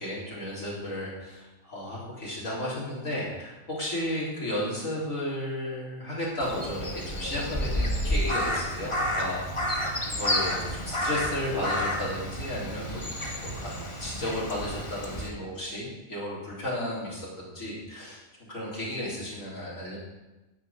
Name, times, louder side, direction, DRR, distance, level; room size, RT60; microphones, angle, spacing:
voice 1, 0.0-9.6 10.1-13.0 13.4-18.2 18.5-20.0, left 1 dB, 70° left, -7 dB, 4.0 m, -33 dB
Crow, 6.4-15.3, equal, 20° left, 1.6 m, -30 dB
11.0 x 7.6 x 9.0 m, 1.1 s
omnidirectional pair, 1.4 m